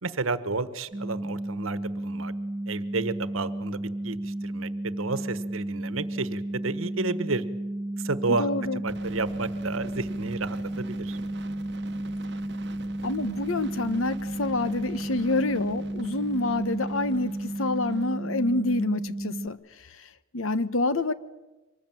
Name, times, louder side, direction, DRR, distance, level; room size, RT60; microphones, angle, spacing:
voice 1, 0.0-2.3 2.7-7.4 8.0-8.5 8.8-11.2, right 3 dB, 85° right, 1.3 m, -31 dB
sound 1, 0.9-19.5, right 1 dB, 25° right, 1.4 m, -33 dB
voice 2, 8.4-8.8 13.0-19.6 20.3-21.1, left 2 dB, 90° left, 1.1 m, -27 dB
sound 2, 8.9-18.1, right 2 dB, 55° right, 0.9 m, -46 dB
25.0 x 20.0 x 9.1 m
head